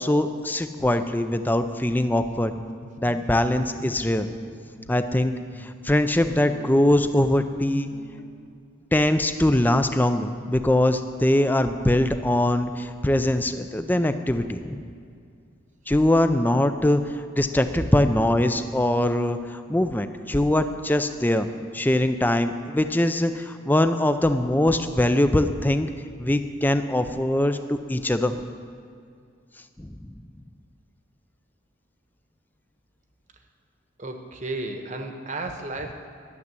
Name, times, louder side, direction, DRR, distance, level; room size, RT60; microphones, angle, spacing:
voice 1, 0.0-2.5 3.0-4.3 4.9-5.3 5.6-7.9 8.9-14.8 15.9-21.5 21.7-25.9 26.2-28.4 29.8-30.1, left 1 dB, 10° left, 9 dB, 0.5 m, -22 dB
Guitar, 0.5-8.5, equal, 60° left, 0.9 m, -46 dB
voice 2, 34.0-35.9, right 2 dB, 35° right, 5 dB, 1.1 m, -33 dB
12.0 x 7.3 x 9.6 m, 2.3 s
head